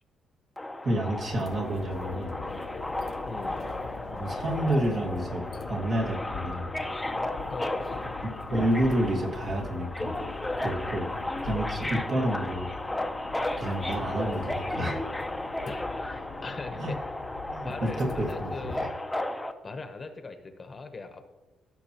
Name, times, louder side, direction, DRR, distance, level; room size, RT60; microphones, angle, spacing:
Subway metro underground, 0.6-19.5, left 1 dB, 10° left, 0.7 m, -34 dB
voice 1, 0.8-2.4 4.1-6.7 8.5-10.2 10.6-11.1 11.4-12.7 13.6-15.0 16.8-16.9 17.5-18.9, right 1 dB, 50° right, -1 dB, 1.9 m, -29 dB
sound 1, 1.1-18.8, left 6 dB, 75° left, 0.6 m, -42 dB
voice 2, 3.3-3.7 7.5-8.1 15.7-17.0 17.6-18.9 19.6-21.3, left 3 dB, 35° left, 7 dB, 0.9 m, -40 dB
15.5 x 6.1 x 3.0 m, 1.1 s
cardioid pair, 90°, 0 cm